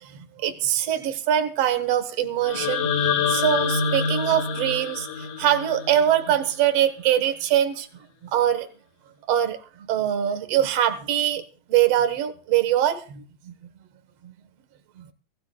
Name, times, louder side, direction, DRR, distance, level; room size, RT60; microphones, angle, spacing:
voice 1, 0.0-7.9 8.2-8.7 9.3-11.4 11.7-13.5 14.2-14.3 15.0-15.1, right 10 dB, 60° right, 9 dB, 1.8 m, -23 dB
sound 1, 2.4-6.5, left 6 dB, 65° left, 2.8 m, -26 dB
23.5 x 14.5 x 2.3 m, 0.41 s
omnidirectional pair, 4.1 m